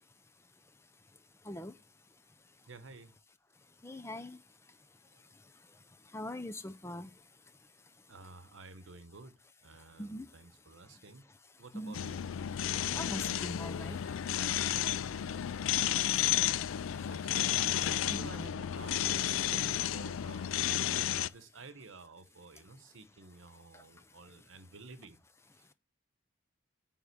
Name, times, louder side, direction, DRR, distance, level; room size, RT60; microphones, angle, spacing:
voice 1, 1.4-1.7 3.8-4.4 6.1-7.1 10.0-10.3 11.7-12.0 12.9-14.0 16.9-17.1 17.8-18.3 23.7-23.8, left 1 dB, 15° left, 0.5 m, -42 dB
voice 2, 2.7-3.2 8.1-11.3 11.6-12.2 17.1-17.6 17.9-20.6 20.9-25.2 25.5-25.7, right 3 dB, 75° right, 0.9 m, -52 dB
sound 1, 11.9-21.3, left 11 dB, 85° left, 0.4 m, -32 dB
9.5 x 3.6 x 6.8 m
head